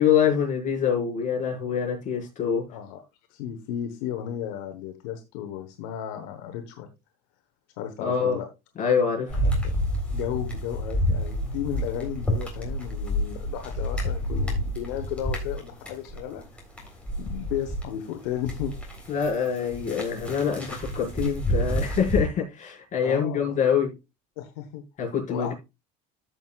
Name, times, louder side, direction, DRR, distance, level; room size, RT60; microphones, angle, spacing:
voice 1, 0.0-2.7 8.0-8.4 8.8-9.4 19.1-23.9 25.0-25.5, left 7 dB, 40° left, 5.4 m, -25 dB
voice 2, 2.7-3.0 3.3-6.9 7.8-8.5 9.3-9.7 10.1-16.5 17.2-18.7 23.0-23.5 24.4-24.8 25.3-25.5, left 10 dB, 85° left, 1.2 m, -34 dB
sound 1, 9.3-17.9 18.2-22.2, equal, 5° left, 3.7 m, -29 dB
13.5 x 6.3 x 2.4 m
supercardioid pair, 110°, 20 cm